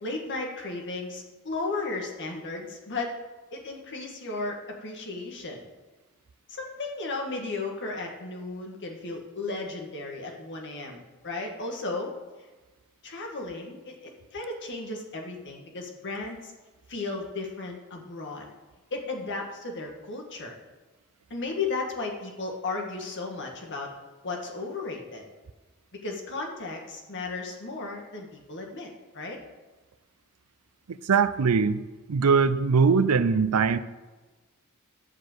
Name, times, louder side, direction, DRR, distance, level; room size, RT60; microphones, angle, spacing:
voice 1, 0.0-3.1 3.5-5.7 6.5-12.1 13.0-16.5 16.9-18.5 18.9-20.6 21.3-23.9 24.2-25.3 25.9-29.4, left 3 dB, 55° left, 1 dB, 1.8 m, -35 dB
voice 2, 31.1-31.8 32.1-33.8, right 5 dB, 80° right, 14 dB, 0.5 m, -21 dB
11.0 x 4.9 x 7.9 m, 1.3 s
head